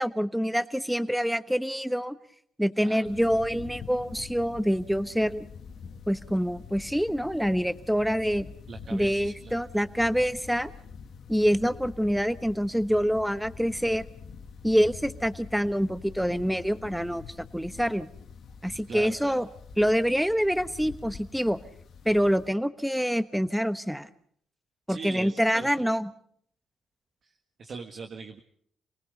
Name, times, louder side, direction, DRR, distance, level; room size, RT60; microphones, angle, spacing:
voice 1, 0.0-2.1 2.6-5.5 6.1-8.5 8.9-10.7 11.3-14.0 14.6-17.2 17.5-18.1 18.6-19.5 19.8-21.6 22.0-24.1 24.9-26.1, equal, ahead, 12 dB, 1.2 m, -26 dB
sound 1, 3.0-22.5, left 6 dB, 65° left, 1.7 m, -46 dB
voice 2, 8.7-9.6 18.9-19.4 24.9-25.7 27.2-28.4, right 4 dB, 55° right, 4 dB, 1.6 m, -41 dB
28.5 x 19.0 x 5.4 m, 0.64 s
cardioid pair, 90°, 0 cm